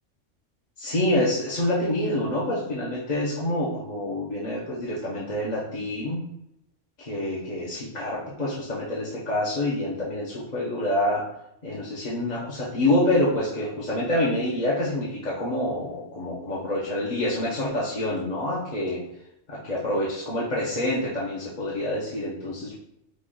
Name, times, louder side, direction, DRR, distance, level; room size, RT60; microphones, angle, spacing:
voice 1, 0.8-6.2 7.0-11.2 11.6-19.0 19.5-22.7, left 1 dB, 40° left, -6 dB, 1.0 m, -27 dB
5.2 x 2.5 x 3.8 m, 0.81 s
omnidirectional pair, 1.2 m